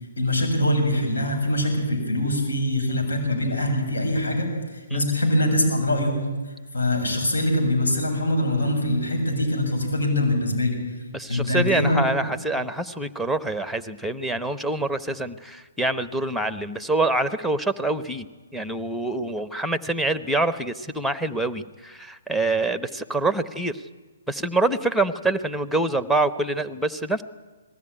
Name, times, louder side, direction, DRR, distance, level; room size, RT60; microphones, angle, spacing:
voice 1, 0.2-6.2 6.7-10.8 11.3-12.0, left 1 dB, 80° left, 3 dB, 7.3 m, -23 dB
voice 2, 11.1-18.3 18.5-23.8 24.3-27.2, right 2 dB, ahead, 12 dB, 0.9 m, -25 dB
20.0 x 15.5 x 10.0 m, 1.3 s
hypercardioid pair, 135°, 0 cm